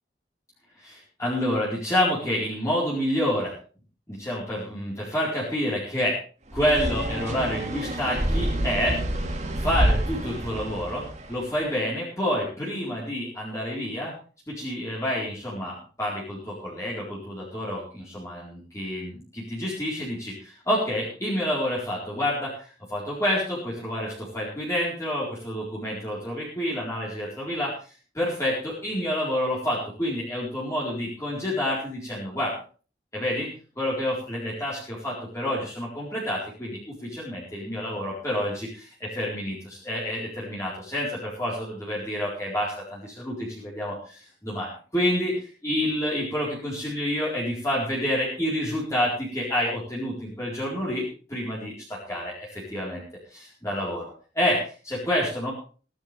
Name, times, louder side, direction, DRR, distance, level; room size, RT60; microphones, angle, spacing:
voice 1, 0.8-3.6 4.1-6.2 6.5-9.0 9.6-14.1 14.5-27.7 28.1-32.6 33.1-33.5 33.8-38.9 39.2-51.0 51.3-53.0 53.3-55.5, equal, 15° left, -6 dB, 4.4 m, -28 dB
sound 1, 6.5-11.4, right 1 dB, 40° right, 2.0 m, -28 dB
17.0 x 12.5 x 3.5 m, 0.37 s
head